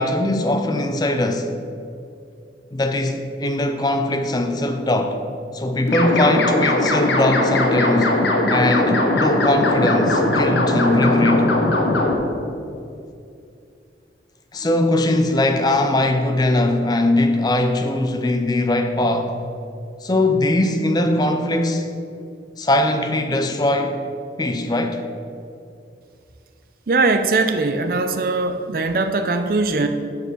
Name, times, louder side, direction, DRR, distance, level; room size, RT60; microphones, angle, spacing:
voice 1, 0.0-1.5 2.7-5.2 5.5-8.2 8.5-11.5 14.5-19.4 20.0-21.9 22.6-24.0 24.4-25.0, left 1 dB, 20° left, 6 dB, 0.4 m, -20 dB
sound 1, 5.9-12.1, left 1 dB, 80° left, 1.0 m, -19 dB
voice 2, 26.9-29.9, right 3 dB, 55° right, 8 dB, 0.5 m, -20 dB
6.6 x 5.0 x 6.5 m, 2.5 s
head